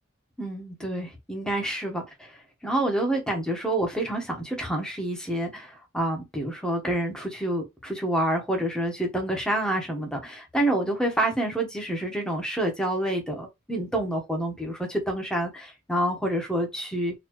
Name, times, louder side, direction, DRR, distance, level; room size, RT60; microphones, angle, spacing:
voice 1, 0.4-17.1, right 1 dB, 5° left, 1.1 m, -28 dB
4.1 x 2.7 x 3.1 m
head